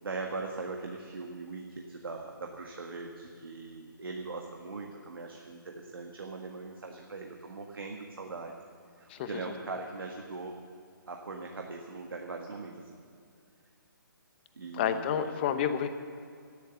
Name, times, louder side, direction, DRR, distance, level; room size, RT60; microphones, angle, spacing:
voice 1, 0.0-8.6 9.0-10.6 11.1-13.0 14.6-15.2, right 3 dB, 80° right, 2 dB, 1.6 m, -40 dB
voice 2, 14.7-15.9, left 8 dB, 30° left, 9 dB, 0.9 m, -29 dB
14.0 x 10.5 x 8.1 m, 2.3 s
hypercardioid pair, 155°, 12 cm